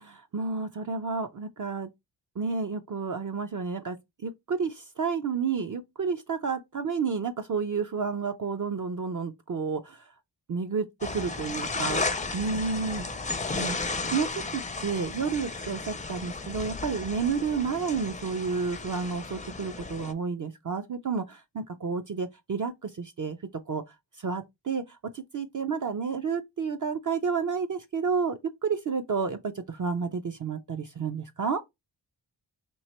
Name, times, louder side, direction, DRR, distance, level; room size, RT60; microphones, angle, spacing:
voice 1, 0.0-1.9 2.4-4.0 4.2-10.1 10.5-10.9 11.1-12.0 12.3-13.1 13.4-14.3 14.5-23.4 23.7-23.8 24.2-31.6, right 5 dB, 45° right, 0.5 m, -31 dB
sound 1, 11.0-20.1, left 3 dB, 15° left, 0.4 m, -34 dB
3.1 x 2.9 x 4.2 m
wide cardioid pair, 95°, 46 cm